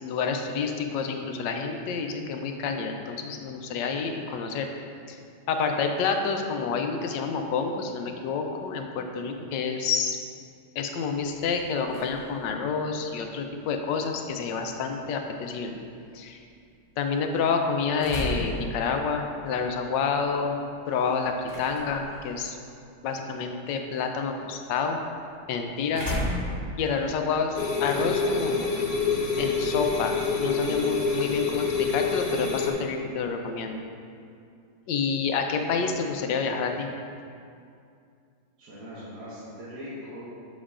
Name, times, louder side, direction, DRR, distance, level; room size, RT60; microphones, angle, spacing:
voice 1, 0.0-4.7 5.1-5.2 5.5-10.2 10.8-15.8 16.1-16.4 17.0-20.6 20.9-22.6 23.0-25.0 25.5-26.1 26.8-28.7 29.4-33.8 34.9-36.9, left 5 dB, 90° left, 4 dB, 1.3 m, -28 dB
sound 1, 11.1-31.0, left 1 dB, 40° right, 2.0 m, -40 dB
sound 2, 27.6-32.7, left 4 dB, 70° left, 1.3 m, -26 dB
voice 2, 38.6-40.2, equal, 65° right, -11 dB, 1.7 m, -40 dB
7.3 x 7.0 x 2.5 m, 2.4 s
omnidirectional pair, 1.9 m